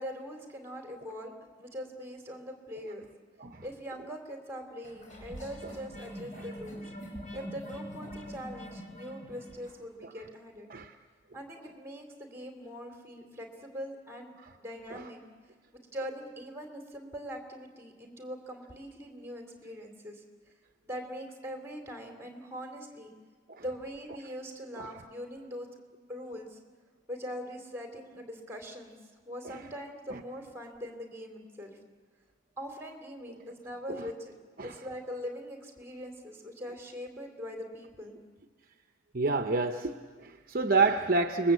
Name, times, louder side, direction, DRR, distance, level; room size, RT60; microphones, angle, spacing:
voice 1, 0.0-3.0 3.6-6.8 7.3-10.7 11.3-14.3 14.6-15.2 15.7-20.2 20.8-23.1 23.6-25.7 26.1-26.6 27.1-29.0 29.2-31.8 32.6-34.3 34.6-38.1, equal, 15° right, 3 dB, 3.3 m, -42 dB
sound 1, 4.8-9.8, equal, 40° left, 5.7 m, -44 dB
voice 2, 39.1-41.5, right 3 dB, 45° right, 7 dB, 0.9 m, -29 dB
29.0 x 21.0 x 8.2 m, 1.5 s
head